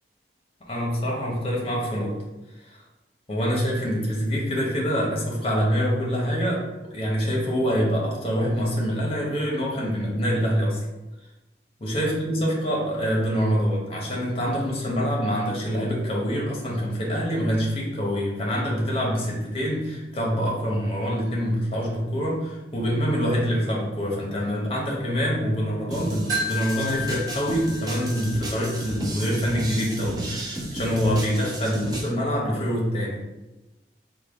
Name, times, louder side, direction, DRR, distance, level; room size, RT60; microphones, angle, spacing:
voice 1, 0.7-2.2 2.7-2.8 3.3-6.7 6.9-10.8 11.8-33.2, equal, 35° left, -3 dB, 0.8 m, -25 dB
sound 1, 25.9-32.1, right 1 dB, 20° right, 0.4 m, -33 dB
Wind chime, 26.3-29.4, left 2 dB, 55° right, 0.9 m, -33 dB
3.5 x 2.2 x 3.5 m, 1.0 s
head